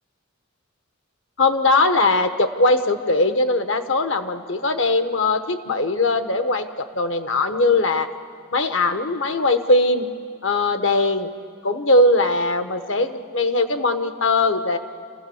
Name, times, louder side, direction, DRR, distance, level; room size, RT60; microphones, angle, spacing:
voice 1, 1.4-6.7 6.9-8.1 8.5-10.1 10.4-11.3 11.6-14.8, left 2 dB, 65° left, 8 dB, 1.2 m, -20 dB
28.0 x 15.5 x 7.1 m, 2.2 s
head